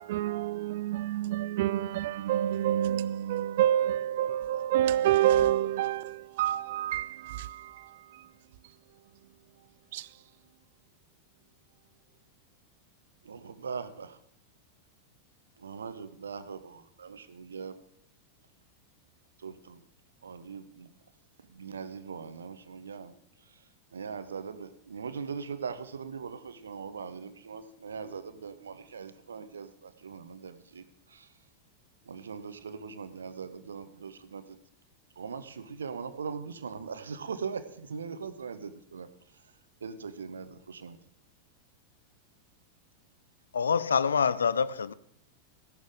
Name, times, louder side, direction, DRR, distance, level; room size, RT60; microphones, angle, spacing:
voice 1, 0.0-7.6 9.9-10.0, right 12 dB, 55° right, 0.4 m, -28 dB
voice 2, 13.2-14.2 15.6-17.8 19.4-19.8 20.2-20.9 21.5-23.1 23.5-23.6 23.9-31.3 32.0-34.6 35.2-39.1 39.8-41.0, right 6 dB, 70° right, 0.9 m, -40 dB
voice 3, 43.5-44.9, left 6 dB, 70° left, 0.5 m, -26 dB
15.0 x 11.5 x 3.7 m
figure-of-eight pair, 90°, 0 cm